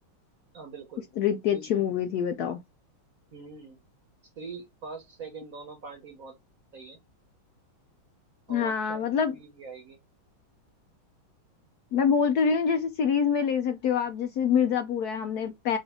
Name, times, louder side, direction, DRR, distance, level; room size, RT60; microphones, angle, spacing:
voice 1, 0.5-1.0 1.5-1.7 3.3-3.8 4.4-6.4 6.7-7.0 8.5-9.0 9.3-10.0, right 4 dB, 50° right, 1.1 m, -43 dB
voice 2, 1.2-2.6 8.5-9.3 11.9-15.8, left 7 dB, 80° left, 0.8 m, -25 dB
5.1 x 2.4 x 3.6 m
omnidirectional pair, 2.3 m